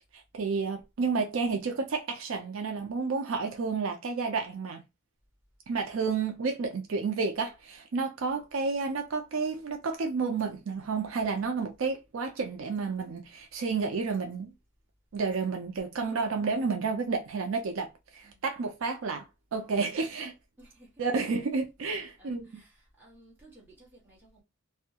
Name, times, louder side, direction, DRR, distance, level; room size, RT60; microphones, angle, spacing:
voice 1, 0.1-4.8 5.7-14.5 15.1-17.9 18.1-19.2 19.5-20.3 21.0-22.6, right 4 dB, 65° right, 0.4 m, -31 dB
voice 2, 20.6-21.0 22.2-24.4, right 1 dB, 10° right, 1.2 m, -57 dB
2.2 x 2.1 x 2.7 m
head